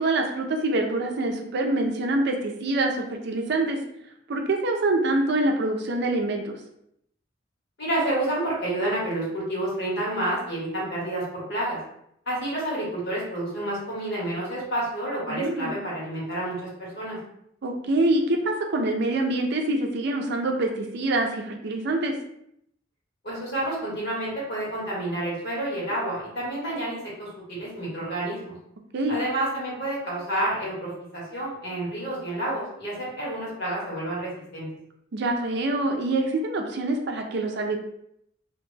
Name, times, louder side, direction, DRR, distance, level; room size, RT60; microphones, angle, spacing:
voice 1, 0.0-3.8 4.3-6.6 15.3-15.8 17.6-22.1 28.9-29.2 35.1-37.8, right 2 dB, 60° right, 3 dB, 0.4 m, -25 dB
voice 2, 7.8-11.8 12.2-17.2 23.2-28.5 29.1-34.7, right 1 dB, 60° left, -6 dB, 1.5 m, -29 dB
2.7 x 2.1 x 3.2 m, 0.74 s
head